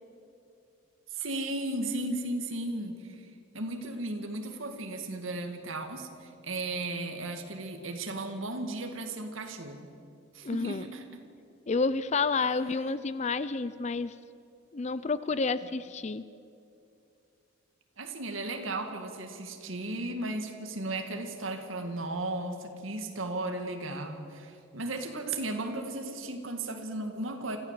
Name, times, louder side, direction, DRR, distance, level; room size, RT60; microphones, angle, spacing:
voice 1, 1.1-3.2 3.5-9.9 10.3-11.2 18.0-27.6, right 2 dB, 80° right, 5 dB, 2.0 m, -35 dB
voice 2, 10.4-10.8 11.7-14.1 14.7-16.2, left 4 dB, 35° left, 15 dB, 0.5 m, -29 dB
26.0 x 14.5 x 7.5 m, 2.6 s
head